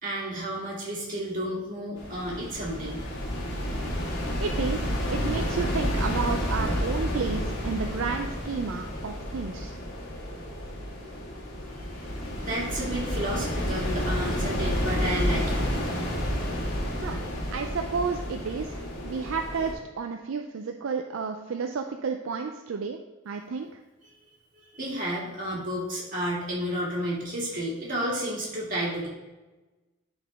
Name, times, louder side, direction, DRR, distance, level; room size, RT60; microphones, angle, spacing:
voice 1, 0.0-3.0 12.4-15.6 24.6-29.1, equal, 40° right, -5 dB, 2.1 m, -31 dB
sound 1, 2.0-19.7, equal, 55° left, 1.8 m, -30 dB
voice 2, 4.4-9.8 17.0-17.2 17.5-23.0 23.3-23.8, right 5 dB, 65° right, 4 dB, 0.4 m, -31 dB
10.0 x 4.1 x 3.4 m, 1.2 s
head